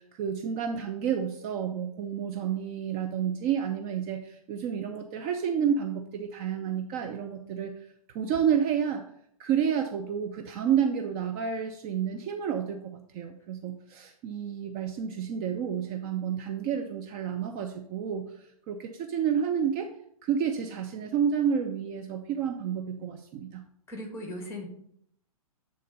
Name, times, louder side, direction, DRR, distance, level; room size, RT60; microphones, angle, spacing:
voice 1, 0.0-7.7 8.1-9.0 9.4-19.9 20.2-23.6, right 8 dB, 30° right, 4 dB, 0.6 m, -30 dB
voice 2, 23.9-24.7, left 1 dB, 10° left, 2 dB, 2.0 m, -37 dB
8.4 x 3.8 x 5.2 m, 0.70 s
hypercardioid pair, 125°, 19 cm